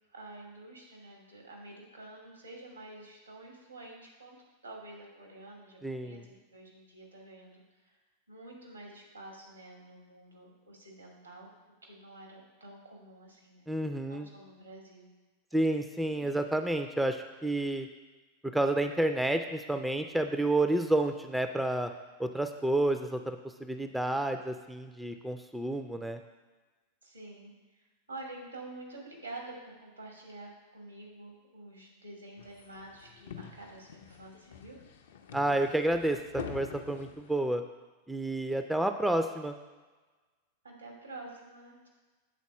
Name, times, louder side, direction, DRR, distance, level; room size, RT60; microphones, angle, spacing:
voice 1, 0.1-4.4 4.6-8.0 8.3-11.5 11.8-13.7 14.1-15.1 16.1-16.3 27.0-27.5 28.1-34.8 40.6-41.9, right 2 dB, 80° right, -2 dB, 2.1 m, -48 dB
voice 2, 5.8-6.2 13.7-14.3 15.5-17.9 18.5-21.9 22.2-26.2 35.3-37.6 38.1-39.5, right 1 dB, 5° right, 6 dB, 0.4 m, -30 dB
sound 1, 32.4-37.4, left 7 dB, 60° left, 0.5 m, -46 dB
8.2 x 4.1 x 6.1 m, 1.3 s
figure-of-eight pair, 90°, 0 cm